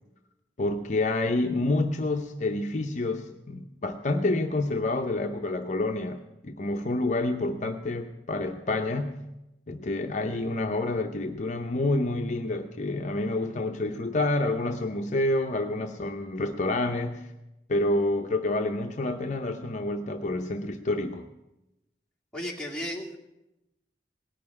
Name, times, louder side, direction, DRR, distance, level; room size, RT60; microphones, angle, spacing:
voice 1, 0.6-9.2 9.7-17.3 17.7-21.3, left 2 dB, 45° left, 5 dB, 0.7 m, -28 dB
voice 2, 22.3-23.2, equal, 5° left, -4 dB, 2.4 m, -34 dB
18.0 x 6.8 x 9.5 m, 0.94 s
head